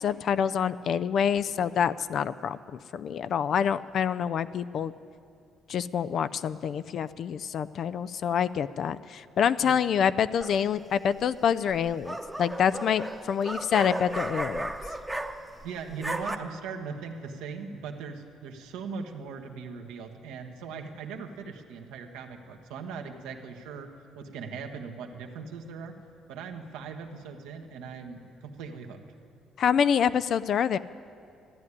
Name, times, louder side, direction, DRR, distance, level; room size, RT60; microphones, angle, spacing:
voice 1, 0.0-2.6 2.9-4.9 5.7-14.7 29.6-30.8, left 8 dB, 60° left, 14 dB, 0.3 m, -26 dB
sound 1, 10.4-10.8 11.7-15.6 15.9-16.3, right 1 dB, 10° right, 0.8 m, -34 dB
voice 2, 15.6-26.0 26.3-29.0, right 5 dB, 90° right, 4 dB, 1.2 m, -40 dB
13.5 x 9.7 x 9.6 m, 2.5 s
cardioid pair, 85°, 0 cm